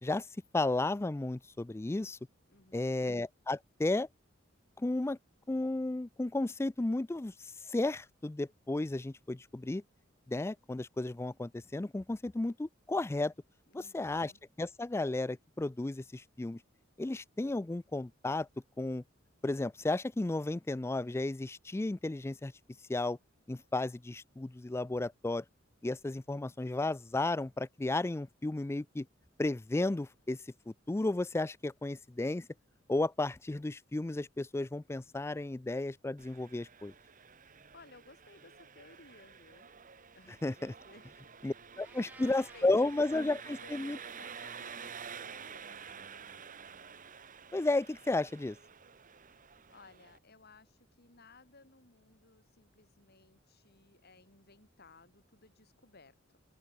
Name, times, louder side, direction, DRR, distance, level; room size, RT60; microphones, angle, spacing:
voice 1, 0.5-2.2 2.7-4.1 4.8-5.2 5.5-7.3 7.7-9.8 10.3-13.3 13.7-14.3 14.6-16.6 17.0-18.5 18.8-19.0 19.4-22.5 22.9-23.2 23.5-25.4 25.8-29.1 29.4-30.4 30.7-32.5 32.9-36.9 40.4-40.7 41.4-43.4 43.7-44.0 47.5-48.6, left 2 dB, 15° left, 0.4 m, -33 dB
voice 2, 2.5-3.0 13.7-14.4 37.4-39.7 40.1-41.1 41.9-46.6 49.1-56.4, left 3 dB, 55° left, 5.0 m, -59 dB
Engine, 36.2-50.2, right 6 dB, 45° right, 1.4 m, -50 dB
Meow, 41.8-42.7, right 2 dB, 10° right, 1.6 m, -54 dB
open air
head